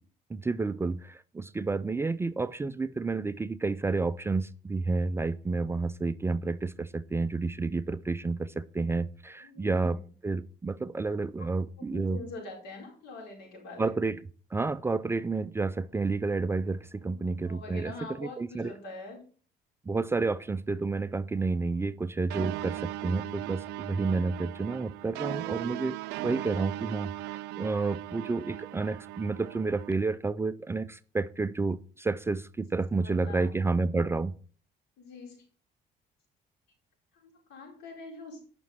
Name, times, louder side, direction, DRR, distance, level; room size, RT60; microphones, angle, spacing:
voice 1, 0.3-10.0 10.2-12.2 13.8-14.2 14.5-18.7 19.9-26.0 26.2-34.3, right 3 dB, 15° right, 0.4 m, -30 dB
voice 2, 9.4-10.0 11.9-13.9 17.0-19.2 20.3-20.4 32.9-33.5 35.0-35.4 37.1-38.4, left 3 dB, 80° left, 4.6 m, -44 dB
sound 1, 22.3-29.9, right 18 dB, 85° right, 0.4 m, -38 dB
10.0 x 6.0 x 5.8 m
cardioid pair, 110°, 17 cm